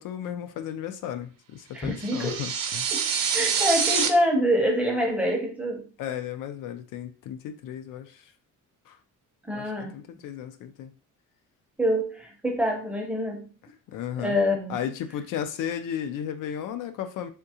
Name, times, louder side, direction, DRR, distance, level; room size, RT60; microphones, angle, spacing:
voice 1, 0.0-2.9 6.0-8.2 8.9-9.0 9.5-10.9 13.9-14.4 14.7-17.3, left 9 dB, 75° left, 0.5 m, -34 dB
voice 2, 1.7-2.4 2.9-3.1 3.3-5.9 9.4-9.9 11.8-13.5 14.2-14.8, equal, 5° right, 0.6 m, -25 dB
sound 1, 2.0-4.1, right 7 dB, 90° right, 0.6 m, -26 dB
3.6 x 2.6 x 2.8 m
cardioid pair, 170°, 32 cm